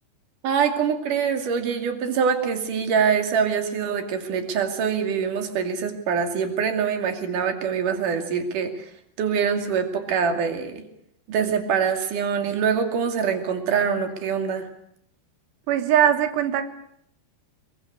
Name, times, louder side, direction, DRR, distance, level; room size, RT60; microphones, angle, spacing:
voice 1, 0.4-8.9 9.2-10.8 11.3-14.7, right 6 dB, 55° right, 6 dB, 3.9 m, -24 dB
voice 2, 15.7-16.6, right 10 dB, 90° right, 9 dB, 3.6 m, -20 dB
25.0 x 22.5 x 8.3 m, 0.72 s
omnidirectional pair, 4.7 m